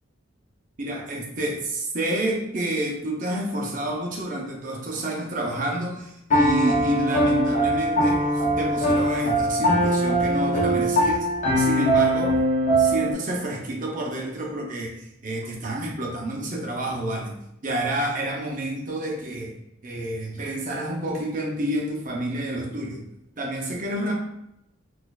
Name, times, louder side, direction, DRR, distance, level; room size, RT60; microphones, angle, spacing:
voice 1, 0.8-11.3 11.6-19.5 19.8-23.0 23.4-24.1, right 1 dB, 45° right, 0 dB, 0.7 m, -29 dB
Piano, 6.3-13.1, right 1 dB, 35° left, 0.6 m, -21 dB
4.1 x 2.5 x 2.3 m, 0.80 s
head